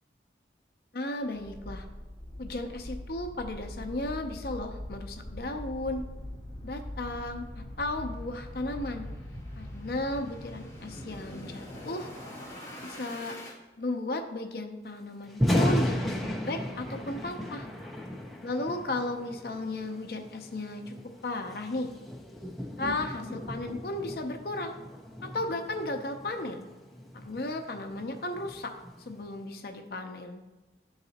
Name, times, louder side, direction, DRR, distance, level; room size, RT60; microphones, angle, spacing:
voice 1, 0.9-1.9 2.4-6.0 6.6-9.0 9.6-12.1 12.8-13.4 13.8-17.7 18.4-21.0 21.2-21.9 22.8-24.7 25.2-26.7 27.1-28.7 29.1-30.4, left 2 dB, 55° left, 5 dB, 0.6 m, -35 dB
sound 1, 1.3-13.5, left 1 dB, 20° left, 1.9 m, -42 dB
Thunder, 15.3-29.4, equal, ahead, 0.7 m, -35 dB
11.5 x 4.0 x 2.8 m, 1.2 s
head